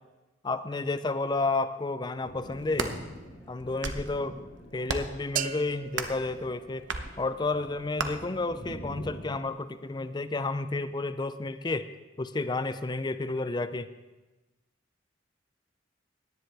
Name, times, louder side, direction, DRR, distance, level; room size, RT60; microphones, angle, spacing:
voice 1, 0.4-3.0 3.5-4.4 4.7-6.9 7.2-11.9 12.2-13.9, left 3 dB, 25° left, 12 dB, 0.4 m, -31 dB
Thunder, 2.2-9.5, equal, 80° left, 4.2 m, -46 dB
sound 1, 2.5-3.0 3.6-4.1 4.8-5.2 5.9-6.2 6.9-7.1 8.0-8.1, right 4 dB, 70° right, 0.9 m, -32 dB
sound 2, 5.4-7.3, right 9 dB, 45° right, 0.4 m, -37 dB
17.5 x 10.5 x 3.4 m, 1.1 s
head